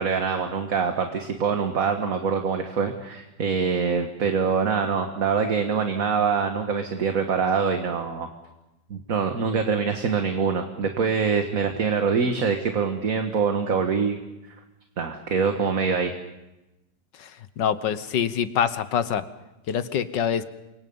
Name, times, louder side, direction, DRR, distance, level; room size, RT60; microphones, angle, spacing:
voice 1, 0.0-8.3 8.9-14.2 15.0-16.1, right 5 dB, 55° right, 5 dB, 1.8 m, -24 dB
voice 2, 17.6-19.2 19.7-20.4, left 8 dB, 90° left, 13 dB, 1.8 m, -25 dB
29.5 x 24.5 x 5.5 m, 0.98 s
omnidirectional pair, 1.9 m